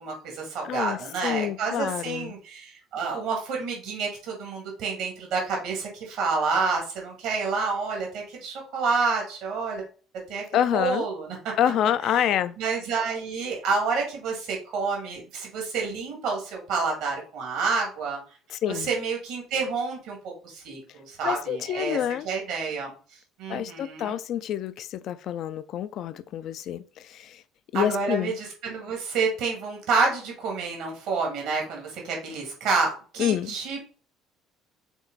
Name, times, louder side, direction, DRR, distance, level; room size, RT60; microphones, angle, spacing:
voice 1, 0.0-9.8 10.3-10.4 10.7-11.4 12.1-12.3 12.6-18.2 18.7-22.0 22.2-22.9 23.4-24.2 27.7-33.8, right 4 dB, 60° right, 2.5 m, -29 dB
voice 2, 0.7-2.3 10.5-11.1 11.6-12.5 18.5-18.9 21.2-22.3 23.5-27.4 27.7-28.3 33.2-33.5, left 10 dB, 55° left, 0.4 m, -27 dB
6.3 x 3.9 x 3.9 m
figure-of-eight pair, 55°, 0 cm